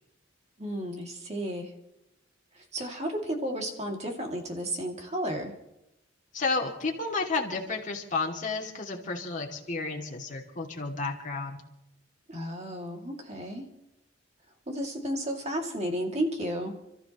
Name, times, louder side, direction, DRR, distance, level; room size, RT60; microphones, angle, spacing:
voice 1, 0.6-1.7 2.5-5.5 12.3-13.6 14.7-16.7, equal, 35° right, 2 dB, 2.4 m, -33 dB
voice 2, 6.3-11.6, left 3 dB, 40° left, 0 dB, 2.5 m, -31 dB
30.0 x 13.5 x 3.0 m, 0.86 s
head